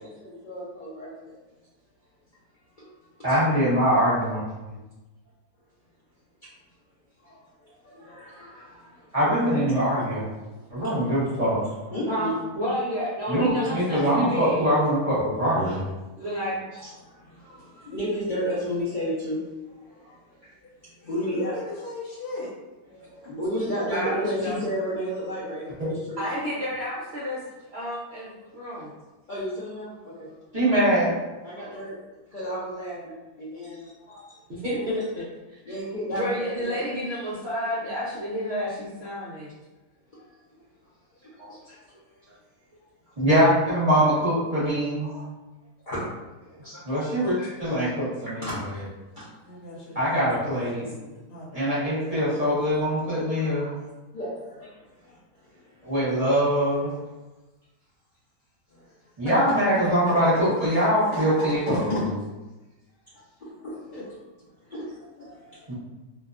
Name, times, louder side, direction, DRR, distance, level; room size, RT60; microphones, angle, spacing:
voice 1, 0.0-1.3 2.7-2.9 7.2-7.4 7.8-9.5 10.0-10.2 10.8-11.0 11.2-12.3 13.8-14.0 15.5-15.8 16.7-19.4 19.9-21.6 22.9-26.2 29.3-30.3 31.4-34.4 34.8-34.9 35.7-36.8 40.1-40.4 41.5-41.7 45.9-46.0 48.3-48.5 49.2-49.3 52.3-52.6 53.0-53.9 54.1-56.4 56.8-57.0 58.7-58.8 63.4-64.1 64.7-65.7, equal, 85° left, -10 dB, 0.4 m, -34 dB
voice 2, 3.2-4.4 9.1-10.2 10.7-11.6 13.3-15.8 25.8-25.9 30.5-31.2 41.4-41.5 43.2-45.1 46.8-48.5 49.9-50.8 51.5-53.7 55.8-56.9 59.2-62.1 65.7-65.8, equal, 30° right, -11 dB, 0.9 m, -23 dB
voice 3, 12.1-14.6 16.2-16.9 23.9-24.6 26.2-27.4 27.7-28.9 34.5-35.2 35.7-35.8 36.1-39.5 41.5-41.7 45.0-45.2 46.5-46.8 47.4-47.7 61.7-62.0, equal, 60° right, -8 dB, 0.7 m, -31 dB
voice 4, 21.0-22.5 49.4-52.1 59.2-59.8 60.7-61.2 61.9-62.0 63.9-64.0, left 1 dB, 65° left, -6 dB, 1.1 m, -38 dB
2.6 x 2.2 x 2.4 m, 1.1 s
omnidirectional pair, 1.7 m